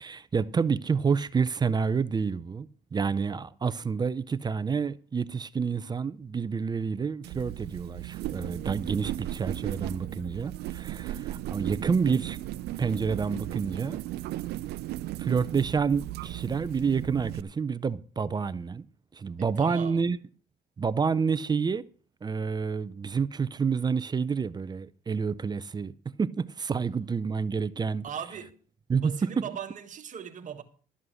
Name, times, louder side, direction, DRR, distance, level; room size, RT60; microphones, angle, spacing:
voice 1, 0.0-12.4 12.8-14.0 15.2-18.8 19.1-20.2 20.8-21.8 22.2-25.9 26.2-28.0 28.9-29.5, right 5 dB, 25° right, 0.6 m, -28 dB
sound 1, 7.2-17.4, right 15 dB, 75° right, 0.6 m, -36 dB
voice 2, 19.4-20.0 28.0-28.6 28.9-30.6, right 8 dB, 50° right, 1.6 m, -39 dB
12.5 x 7.4 x 6.4 m
cardioid pair, 110°, 17 cm